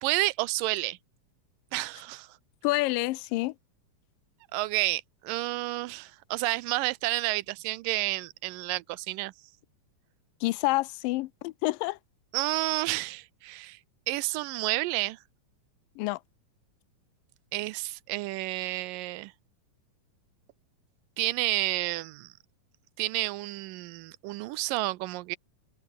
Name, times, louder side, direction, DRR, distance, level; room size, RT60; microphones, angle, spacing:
voice 1, 0.0-1.0 1.7-2.3 4.5-9.3 12.3-13.8 14.1-15.2 17.5-19.3 21.2-22.3 23.0-25.4, right 19 dB, 85° right, 2.3 m, -30 dB
voice 2, 2.6-3.6 10.4-12.0 16.0-16.2, left 20 dB, 85° left, 2.4 m, -28 dB
omnidirectional pair, 3.9 m